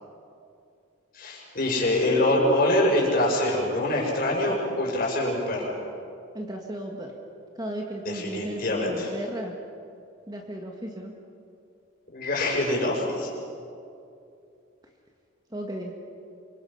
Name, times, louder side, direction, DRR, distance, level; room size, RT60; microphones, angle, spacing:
voice 1, 1.1-5.7 8.0-9.1 12.1-13.3, left 1 dB, 45° left, -2 dB, 6.5 m, -24 dB
voice 2, 6.3-7.1 7.6-9.5 10.3-11.1 15.5-15.9, right 1 dB, 20° right, 1 dB, 1.7 m, -35 dB
26.5 x 23.5 x 5.8 m, 2.6 s
head